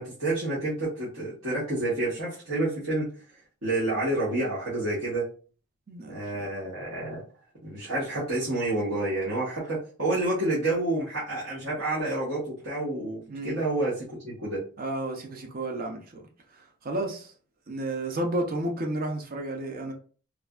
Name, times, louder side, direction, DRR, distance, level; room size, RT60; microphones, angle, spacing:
voice 1, 0.0-3.1 3.6-5.3 6.1-7.2 7.6-14.6, right 2 dB, 85° right, 1.1 m, -29 dB
voice 2, 5.9-6.5 13.3-13.6 14.8-16.2 16.5-17.3 17.7-19.9, right 1 dB, 45° right, 0.6 m, -32 dB
3.2 x 2.4 x 2.3 m
head